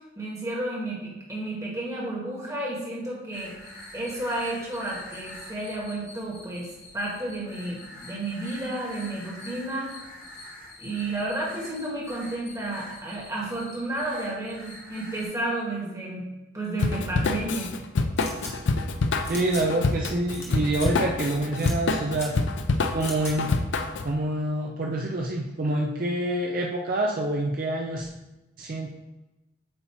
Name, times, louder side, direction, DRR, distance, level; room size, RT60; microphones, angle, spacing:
voice 1, 0.1-3.5 3.9-9.9 10.8-16.2 16.5-17.7, right 1 dB, 15° right, -4 dB, 1.4 m, -32 dB
sound 1, 3.3-15.3, left 1 dB, 45° left, 1.6 m, -45 dB
Drum kit / Drum, 16.8-24.1, left 3 dB, 75° left, 0.5 m, -26 dB
sound 2, 18.2-18.5 19.2-19.6 20.3-20.5 20.7-20.9 21.6-21.7 22.1-22.3 23.0-23.3, left 2 dB, 15° left, 1.0 m, -38 dB
voice 2, 19.3-22.3 22.9-23.5 24.0-28.1 28.6-28.9, right 1 dB, 50° right, 0 dB, 0.5 m, -27 dB
7.9 x 2.8 x 4.4 m, 1.0 s
head